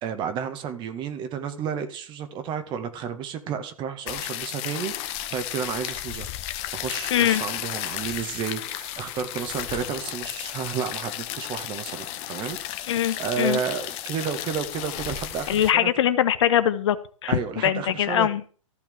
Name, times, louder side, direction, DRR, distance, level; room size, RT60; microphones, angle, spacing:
voice 1, 0.0-6.3 6.7-15.9 17.3-18.3, right 7 dB, 25° right, 8 dB, 2.0 m, -32 dB
sound 1, 4.1-15.7, left 13 dB, 35° left, 1.4 m, -34 dB
voice 2, 7.1-7.4 12.9-13.6 15.5-17.0 17.2-18.4, left 11 dB, 55° left, 13 dB, 1.4 m, -22 dB
15.0 x 5.8 x 9.1 m, 0.41 s
hypercardioid pair, 120°, 17 cm